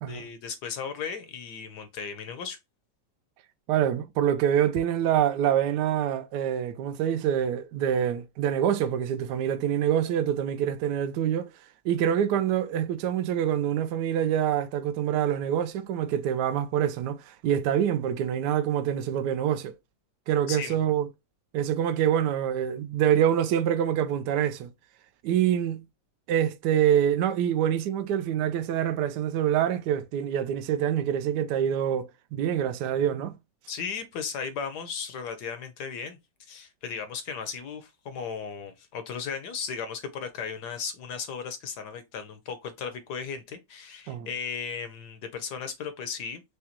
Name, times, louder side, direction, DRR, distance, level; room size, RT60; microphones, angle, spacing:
voice 1, 0.1-2.6 20.5-20.8 33.7-36.2 36.5-46.4, left 6 dB, 70° left, 1.1 m, -36 dB
voice 2, 3.7-11.5 11.8-19.7 20.3-21.1 21.5-24.7 25.2-25.8 26.3-33.4 44.1-44.3, right 10 dB, 75° right, 1.1 m, -26 dB
5.0 x 2.2 x 2.8 m
omnidirectional pair, 2.1 m